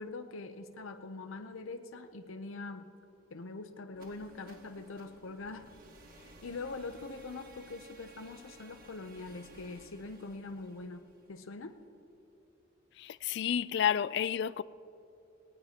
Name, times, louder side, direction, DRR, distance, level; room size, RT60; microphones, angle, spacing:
voice 1, 0.0-2.9 3.3-5.7 6.2-11.8, left 3 dB, 90° left, 0.7 m, -43 dB
sound 1, 3.9-11.8, right 2 dB, 45° right, 1.4 m, -56 dB
voice 2, 13.0-14.6, left 8 dB, 60° left, 0.3 m, -30 dB
19.5 x 18.0 x 2.9 m
head